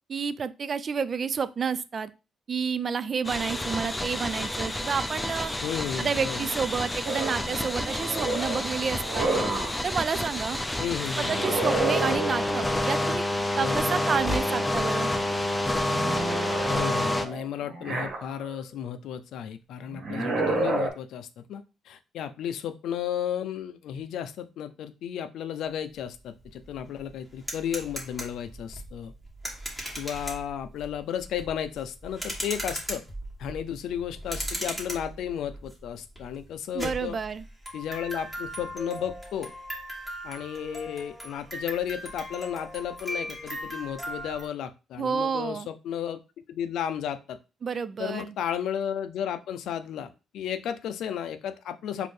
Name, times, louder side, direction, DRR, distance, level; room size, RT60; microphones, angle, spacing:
voice 1, 0.1-2.1 2.5-5.5 6.0-9.3 9.8-10.6 11.2-13.2 13.6-15.1 36.7-37.5 45.0-45.7 47.6-48.3, right 6 dB, 45° right, 15 dB, 0.3 m, -30 dB
sound 1, 3.2-17.3, left 1 dB, 10° left, 0.5 m, -29 dB
voice 2, 5.6-6.5 10.8-11.4 13.6-13.9 16.7-29.1 30.0-33.0 33.4-37.2 37.7-39.5 40.2-46.2 46.5-47.4 48.0-52.1, left 9 dB, 80° left, 10 dB, 0.4 m, -33 dB
sound 2, 7.0-9.9 11.2-12.8 13.7-14.7 15.1-18.6 19.9-20.9, right 2 dB, 75° right, 1.3 m, -31 dB
sound 3, 26.0-26.1 26.4-44.5, equal, 5° right, 1.5 m, -38 dB
4.2 x 2.6 x 3.2 m, 0.30 s
cardioid pair, 90°, 0 cm